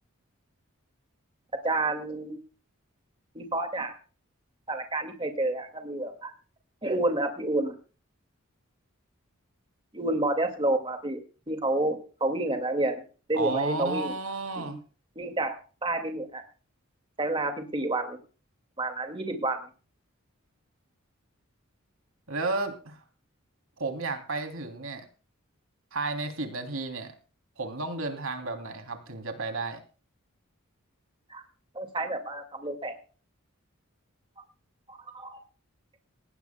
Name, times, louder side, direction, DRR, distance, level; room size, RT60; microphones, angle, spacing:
voice 1, 1.6-2.4 3.3-3.9 4.7-6.3 6.8-7.7 9.9-13.0 13.3-14.1 14.6-14.7 15.2-15.6 15.8-16.4 17.2-18.2 18.8-19.6 31.3-31.4 31.7-33.0 34.9-35.4, right 2 dB, 25° right, 6 dB, 2.1 m, -29 dB
voice 2, 13.3-14.8 22.3-23.0 23.8-25.1 25.9-27.1 27.6-29.8, right 3 dB, 70° right, 5 dB, 3.1 m, -32 dB
19.5 x 16.5 x 2.2 m, 0.37 s
head